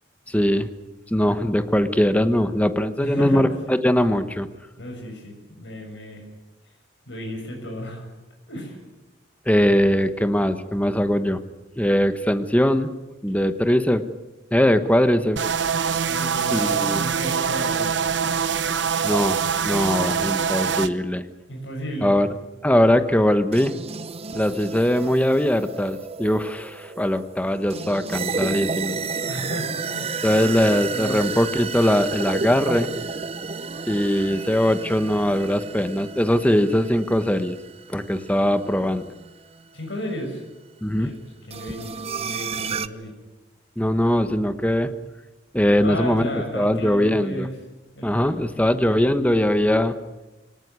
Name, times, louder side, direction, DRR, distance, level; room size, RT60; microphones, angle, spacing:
voice 1, 0.3-0.7 1.1-4.5 9.5-11.4 11.8-12.9 13.2-14.0 14.5-15.4 16.5-17.0 19.0-21.3 22.0-22.3 22.6-23.7 24.3-29.0 30.2-32.9 33.9-37.6 37.9-39.1 40.8-41.1 43.8-44.9 45.5-46.2 46.5-47.5 48.0-50.0, equal, 10° left, 11 dB, 1.1 m, -21 dB
voice 2, 3.0-3.7 4.8-6.2 7.1-8.0 8.5-8.8 16.1-18.0 21.5-22.2 29.3-31.4 39.7-40.4 40.9-41.1 41.5-43.1 45.7-47.5 47.9-48.4, equal, 75° left, 2 dB, 6.6 m, -33 dB
sound 1, 15.4-20.9, right 6 dB, 75° right, 0.9 m, -24 dB
sound 2, 23.5-39.6 41.5-42.9, right 5 dB, 35° right, 0.7 m, -32 dB
23.5 x 18.5 x 9.5 m, 1.1 s
head